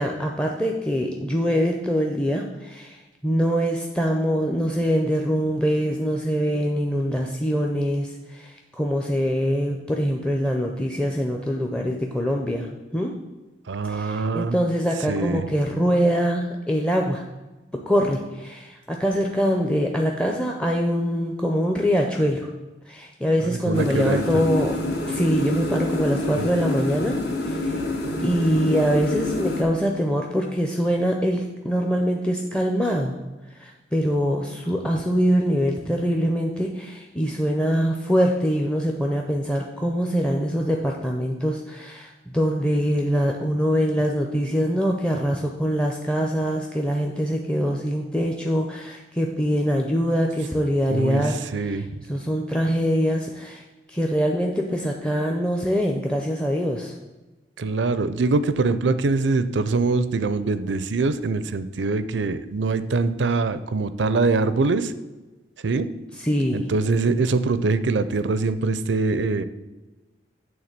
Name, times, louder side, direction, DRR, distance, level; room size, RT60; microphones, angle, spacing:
voice 1, 0.0-13.1 13.9-17.2 17.9-22.5 22.9-24.8 25.1-27.2 27.5-27.8 28.2-33.2 33.5-53.6 53.9-56.9 66.1-66.7, equal, 5° left, 1 dB, 0.5 m, -24 dB
voice 2, 13.7-14.5 15.1-15.4 23.7-24.2 50.9-51.2 51.5-51.9 57.6-64.9 65.6-65.9 66.5-69.4, right 3 dB, 90° right, 13 dB, 0.5 m, -23 dB
sound 1, 23.7-29.6, left 2 dB, 65° left, 1.3 m, -27 dB
8.8 x 3.8 x 6.6 m, 1.2 s
head